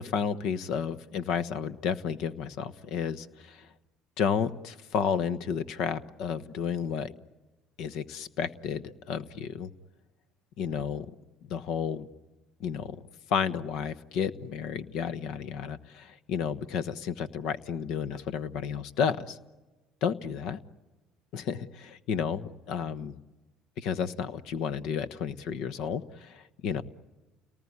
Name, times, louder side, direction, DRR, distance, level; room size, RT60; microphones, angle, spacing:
voice 1, 0.0-3.6 4.2-7.1 7.8-9.7 10.6-11.1 11.5-12.1 12.6-13.0 13.3-19.4 20.0-20.6 21.3-23.2 23.8-26.8, left 7 dB, 70° left, 11 dB, 1.2 m, -32 dB
30.0 x 19.0 x 9.7 m, 1.2 s
supercardioid pair, 90°, 0 cm